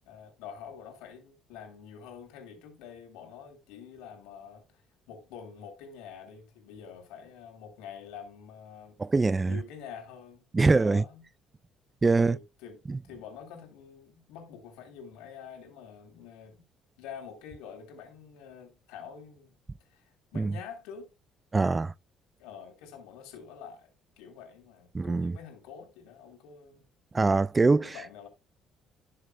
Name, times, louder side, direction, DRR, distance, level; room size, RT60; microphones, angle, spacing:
voice 1, 0.0-4.8 5.1-9.0 9.4-11.2 12.1-12.8 13.1-16.6 17.0-19.6 19.9-21.1 22.4-23.9 24.2-26.9 27.7-28.3, left 7 dB, 90° left, 3.3 m, -46 dB
voice 2, 9.0-9.6 10.5-11.0 12.0-12.4 12.9-13.0 20.4-20.5 21.5-21.9 24.9-25.4 27.1-27.9, right 3 dB, 20° right, 0.4 m, -23 dB
13.0 x 6.6 x 2.2 m
cardioid pair, 95°, 0 cm